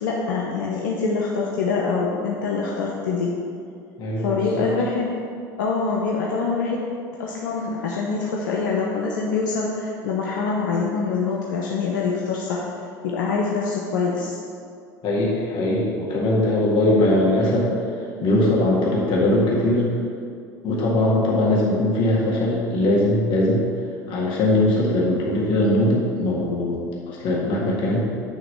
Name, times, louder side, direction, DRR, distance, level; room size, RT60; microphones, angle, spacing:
voice 1, 0.0-3.4 4.2-5.1 5.6-6.8 7.2-12.6 13.0-14.4 24.7-24.8, left 4 dB, 85° left, -3 dB, 0.8 m, -25 dB
voice 2, 4.0-4.7 15.0-17.7 18.2-19.9 20.6-23.7 24.1-26.8 27.1-28.0, left 1 dB, 55° left, -4 dB, 1.8 m, -20 dB
9.2 x 3.1 x 6.6 m, 2.4 s
hypercardioid pair, 90°, 10 cm